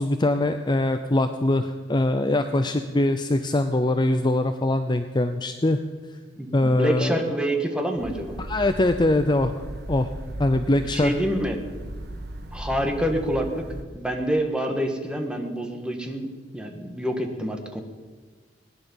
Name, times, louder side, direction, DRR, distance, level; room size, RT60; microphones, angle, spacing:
voice 1, 0.0-5.8 6.5-7.2 8.5-9.5 9.9-10.1 10.4-11.1, left 1 dB, 25° left, 8 dB, 0.6 m, -22 dB
voice 2, 6.4-8.4 10.7-11.6 12.5-13.7 13.9-16.3 16.5-17.8, equal, 5° right, 3 dB, 1.7 m, -27 dB
sound 1, 8.0-13.8, right 1 dB, 60° right, 1.5 m, -37 dB
19.0 x 10.0 x 7.2 m, 1.4 s
head